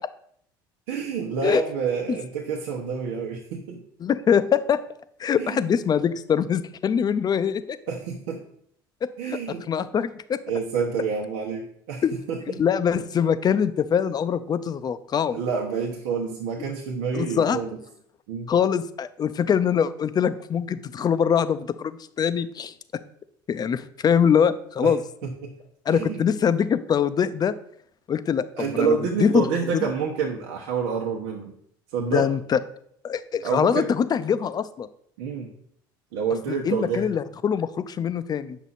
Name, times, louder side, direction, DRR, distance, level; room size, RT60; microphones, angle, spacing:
voice 1, 0.9-3.8 5.4-5.6 7.9-8.4 9.2-9.7 10.5-12.6 15.3-17.8 18.3-18.5 24.8-24.9 25.2-25.5 25.9-26.2 28.5-31.5 31.9-32.3 33.4-33.9 35.2-35.5 36.1-37.2, right 6 dB, 80° right, -1 dB, 1.1 m, -28 dB
voice 2, 4.0-4.8 5.2-7.8 9.0-9.4 9.7-10.4 12.0-12.1 12.6-15.4 17.1-17.6 18.5-22.7 23.5-25.0 25.9-27.5 28.1-28.4 28.8-29.5 29.7-29.9 32.1-32.6 33.0-34.9 36.6-38.6, left 7 dB, 35° left, 13 dB, 0.6 m, -23 dB
8.3 x 6.1 x 4.1 m, 0.67 s
hypercardioid pair, 75°, 12 cm